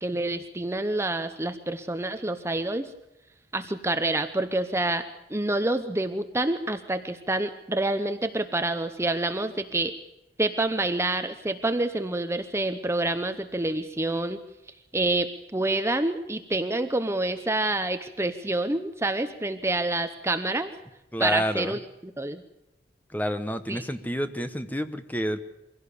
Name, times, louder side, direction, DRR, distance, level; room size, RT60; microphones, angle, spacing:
voice 1, 0.0-2.9 3.5-5.0 5.3-9.9 10.4-14.4 14.9-20.7 21.2-21.8 22.2-22.4 23.7-23.8, right 2 dB, 15° right, 9 dB, 0.8 m, -27 dB
voice 2, 21.1-21.7 23.1-25.4, equal, 10° left, 9 dB, 1.1 m, -29 dB
23.5 x 16.5 x 6.9 m, 0.91 s
head